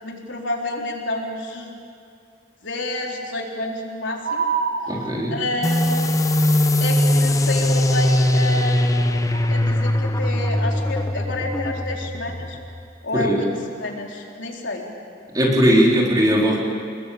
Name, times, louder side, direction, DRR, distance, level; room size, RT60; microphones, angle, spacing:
voice 1, 0.0-1.7 2.6-4.4 5.3-6.5 6.8-12.6 13.0-13.5 13.8-14.9, left 2 dB, 80° left, 0 dB, 3.7 m, -29 dB
sound 1, 4.2-5.6 9.3-9.6, right 6 dB, 65° right, 1.3 m, -26 dB
voice 2, 4.9-5.4 13.1-13.5 15.3-16.6, equal, 20° right, -3 dB, 4.1 m, -18 dB
sound 2, 5.6-12.9, left 1 dB, 15° left, 0.8 m, -20 dB
28.0 x 20.5 x 8.6 m, 2.4 s
head